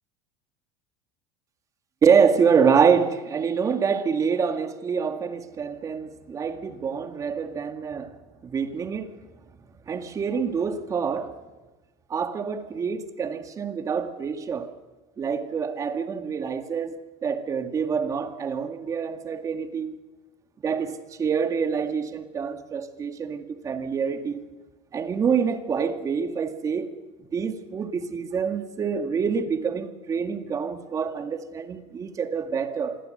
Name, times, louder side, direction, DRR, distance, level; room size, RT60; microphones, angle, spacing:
voice 1, 2.0-8.2 8.4-9.1 9.9-11.4 12.1-14.7 15.2-20.0 20.6-24.4 24.9-26.9 27.3-33.0, right 6 dB, 25° right, 2.1 m, -26 dB
26.5 x 22.0 x 7.9 m
supercardioid pair, 145°, 13 cm